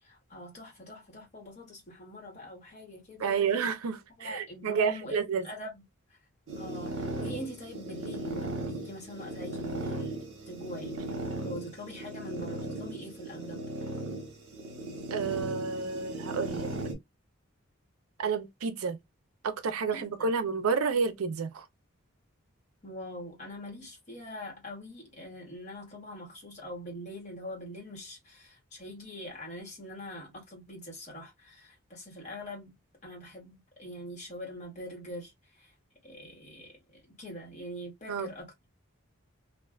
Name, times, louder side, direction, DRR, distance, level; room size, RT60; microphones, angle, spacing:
voice 1, 0.0-3.4 4.2-5.2 5.4-5.8 6.1-6.2 6.6-11.1 11.4-13.6 19.9-20.4 22.8-32.7 33.0-35.7 36.0-38.8, equal, 35° left, 1.3 m, -43 dB
voice 2, 3.2-5.5 15.1-16.7 18.2-19.0 19.4-21.7 38.1-38.3, right 5 dB, 85° right, 0.5 m, -30 dB
sound 1, 6.5-16.9, right 1 dB, 60° right, 0.9 m, -37 dB
2.4 x 2.3 x 2.2 m
head